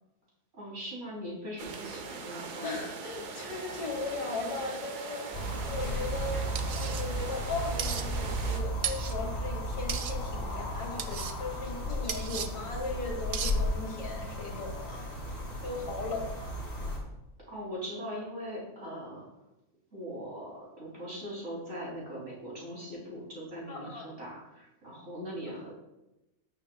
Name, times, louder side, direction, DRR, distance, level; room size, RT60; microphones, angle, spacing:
voice 1, 0.5-2.8 17.5-19.3 19.9-25.7, equal, 45° right, -5 dB, 3.3 m, -40 dB
sound 1, 1.6-8.6, right 5 dB, 85° right, 1.5 m, -41 dB
voice 2, 2.6-16.6 23.7-24.1, left 3 dB, 75° left, 1 dB, 2.1 m, -38 dB
sound 2, 5.3-17.0, equal, 40° left, 2.5 m, -34 dB
sound 3, 6.6-7.0 7.8-8.0 8.8-9.2 9.9-10.1 11.0-11.3 12.1-12.5 13.3-13.6, right 8 dB, 65° right, 0.6 m, -35 dB
16.0 x 6.4 x 2.2 m, 0.94 s
omnidirectional pair, 1.7 m